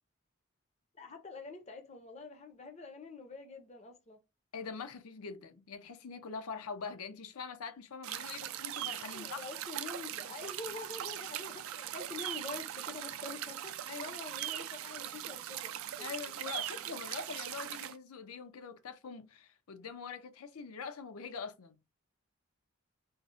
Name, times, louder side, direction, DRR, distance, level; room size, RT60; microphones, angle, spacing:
voice 1, 0.9-4.2 9.1-15.7 16.0-16.1, left 3 dB, 30° left, 0.5 m, -46 dB
voice 2, 4.5-9.5 13.9-14.1 16.0-21.8, left 5 dB, 90° left, 0.6 m, -44 dB
sound 1, 8.0-17.9, right 12 dB, 75° right, 0.3 m, -40 dB
3.9 x 2.0 x 2.4 m
head